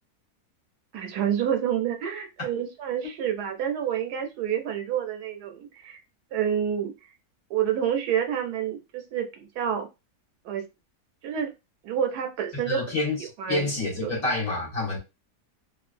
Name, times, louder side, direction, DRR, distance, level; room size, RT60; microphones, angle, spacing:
voice 1, 0.9-6.0 6.3-6.9 7.5-9.9 10.4-10.7 11.2-11.5 11.8-12.8 13.4-13.7 14.0-14.1, right 9 dB, 75° right, 1.1 m, -28 dB
voice 2, 12.5-15.0, left 2 dB, 55° left, 1.6 m, -28 dB
3.1 x 2.3 x 2.4 m
omnidirectional pair, 1.8 m